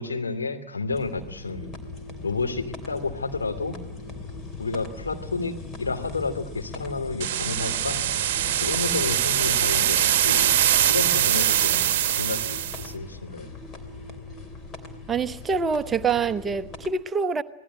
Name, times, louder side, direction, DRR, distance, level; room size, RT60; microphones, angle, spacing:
voice 1, 0.0-1.8 2.2-3.8 4.6-8.0 8.6-10.6 10.9-13.5, left 3 dB, 75° left, 2.7 m, -31 dB
sound 1, 0.9-16.9, left 3 dB, 25° left, 3.3 m, -39 dB
sound 2, 7.2-12.9, right 11 dB, 50° right, 1.1 m, -23 dB
voice 2, 15.1-17.4, right 5 dB, 20° right, 1.0 m, -25 dB
26.5 x 19.0 x 9.9 m
figure-of-eight pair, 90°, 0 cm